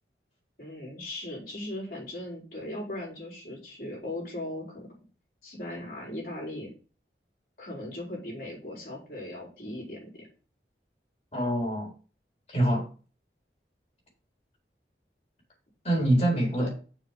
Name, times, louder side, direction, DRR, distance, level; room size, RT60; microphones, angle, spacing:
voice 1, 0.6-4.9 5.4-6.7 7.6-10.3 16.6-16.7, left 1 dB, 55° left, 4.9 m, -38 dB
voice 2, 11.3-11.9 12.5-12.9 15.8-16.7, right 1 dB, 35° left, 3.9 m, -25 dB
7.1 x 5.2 x 5.8 m
head